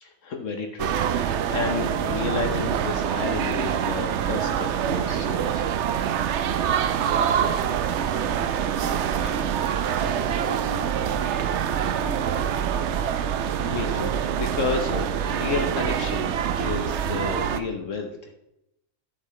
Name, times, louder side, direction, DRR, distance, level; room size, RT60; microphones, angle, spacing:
voice 1, 0.0-5.7 11.8-12.5 13.6-18.3, left 4 dB, 60° left, 4 dB, 1.2 m, -31 dB
sound 1, 0.8-17.6, right 8 dB, 65° right, 0.8 m, -25 dB
voice 2, 7.2-10.8, left 2 dB, 25° left, 3 dB, 1.1 m, -43 dB
Human voice, 10.3-11.5 11.8-15.3 15.7-15.8 16.7-16.8, equal, 35° right, 2.1 m, -42 dB
11.5 x 6.6 x 3.2 m, 0.83 s
omnidirectional pair, 1.5 m